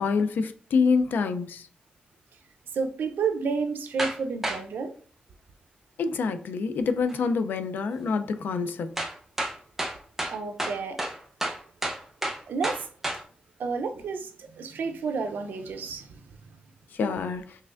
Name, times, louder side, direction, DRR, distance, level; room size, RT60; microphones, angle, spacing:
voice 1, 0.0-1.7 6.0-9.0 16.9-17.6, left 5 dB, 90° left, 0.5 m, -26 dB
voice 2, 2.7-4.9 10.3-11.0 12.5-12.8 13.6-16.2, right 5 dB, 90° right, 0.6 m, -30 dB
sound 1, 4.0-4.2 4.4-4.6 7.1-7.2 9.0-13.2, right 1 dB, 10° right, 0.7 m, -30 dB
5.6 x 3.3 x 2.5 m
wide cardioid pair, 150°, 3 cm